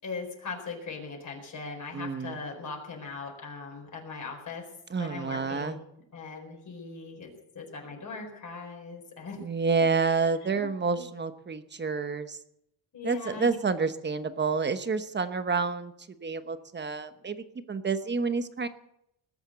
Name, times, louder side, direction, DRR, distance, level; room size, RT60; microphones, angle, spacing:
voice 1, 0.0-4.7 5.0-5.8 6.1-9.4 10.0-11.0 12.9-13.5, left 4 dB, 40° left, 1 dB, 4.4 m, -40 dB
voice 2, 1.9-2.4 4.9-5.8 9.4-12.4 13.0-15.9 16.2-18.7, right 4 dB, 25° right, 10 dB, 1.0 m, -29 dB
20.0 x 8.0 x 8.0 m, 0.79 s
cardioid pair, 150°, 46 cm